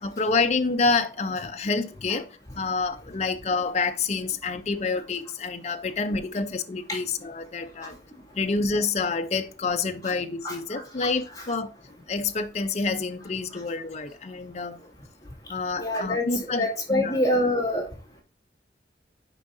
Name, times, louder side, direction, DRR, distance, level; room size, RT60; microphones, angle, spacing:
voice 1, 0.0-8.0 8.4-11.7 12.1-14.8 15.5-17.2, left 4 dB, 40° left, 0.6 m, -28 dB
voice 2, 10.4-11.1 11.4-11.5 15.8-17.8, left 1 dB, 20° left, 2.2 m, -26 dB
9.9 x 4.9 x 2.6 m
head